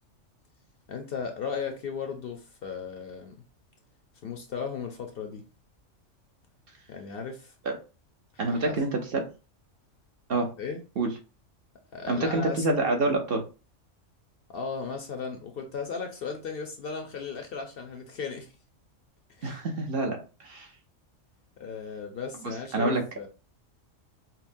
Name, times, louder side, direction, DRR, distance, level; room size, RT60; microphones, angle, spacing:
voice 1, 0.9-3.4 4.2-5.4 6.9-7.5 8.4-8.8 10.6-10.8 11.9-12.7 14.5-18.5 19.4-19.6 21.6-23.3, left 5 dB, 60° left, 0.7 m, -36 dB
voice 2, 8.4-9.3 10.3-10.5 11.0-11.1 12.1-13.4 19.4-20.7 22.4-23.0, right 2 dB, 55° right, 0.9 m, -27 dB
5.7 x 2.0 x 2.5 m
omnidirectional pair, 1.3 m